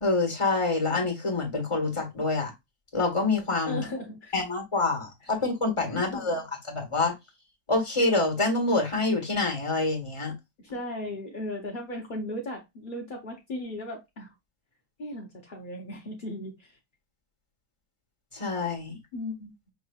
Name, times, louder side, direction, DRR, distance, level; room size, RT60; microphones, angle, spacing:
voice 1, 0.0-2.5 2.9-3.8 4.3-7.1 7.7-10.3 18.3-18.9, left 3 dB, 20° left, 1.4 m, -26 dB
voice 2, 3.7-4.4 5.2-5.3 5.9-6.4 10.6-14.3 15.0-16.8 19.1-19.5, left 1 dB, 45° left, 0.6 m, -37 dB
6.2 x 3.0 x 2.3 m
omnidirectional pair, 2.0 m